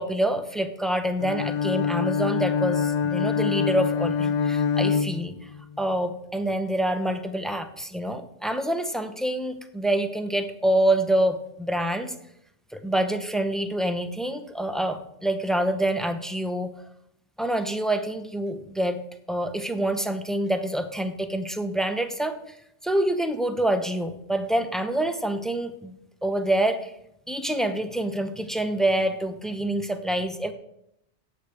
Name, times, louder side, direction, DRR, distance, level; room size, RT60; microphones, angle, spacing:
voice 1, 0.0-5.5 5.8-12.2 12.7-16.7 17.4-19.0 19.3-22.6 22.8-25.9 26.2-26.9 27.3-30.5, right 1 dB, ahead, 7 dB, 0.9 m, -26 dB
Bowed string instrument, 1.2-5.8, left 6 dB, 55° left, 0.5 m, -25 dB
8.7 x 8.3 x 8.5 m, 0.78 s
omnidirectional pair, 1.2 m